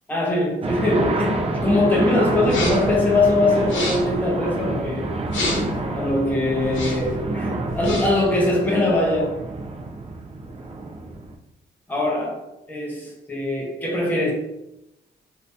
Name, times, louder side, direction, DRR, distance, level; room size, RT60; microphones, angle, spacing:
voice 1, 0.1-5.1 5.9-9.4 11.9-12.4 12.7-14.3, left 2 dB, 10° left, -3 dB, 0.7 m, -22 dB
sound 1, 0.6-11.3, right 2 dB, 30° right, 0.4 m, -28 dB
sound 2, 2.4-3.0 3.6-4.2 5.3-5.8 6.6-7.2 7.7-8.2, left 2 dB, 75° left, 0.9 m, -29 dB
2.6 x 2.6 x 3.4 m, 0.88 s
cardioid pair, 115°, 20 cm